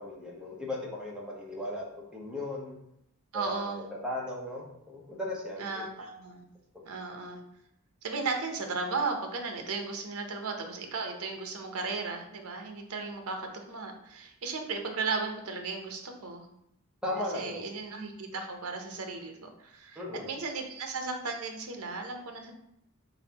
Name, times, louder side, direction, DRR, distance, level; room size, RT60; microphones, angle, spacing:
voice 1, 0.0-2.8 3.3-3.7 4.0-5.9 17.0-17.7 20.0-20.3, left 1 dB, 5° right, -3 dB, 0.9 m, -37 dB
voice 2, 3.3-3.8 5.6-6.5 6.9-7.4 8.0-16.5 17.3-20.0 20.3-22.5, right 4 dB, 70° right, 4 dB, 0.7 m, -35 dB
4.0 x 3.9 x 2.9 m, 0.77 s
head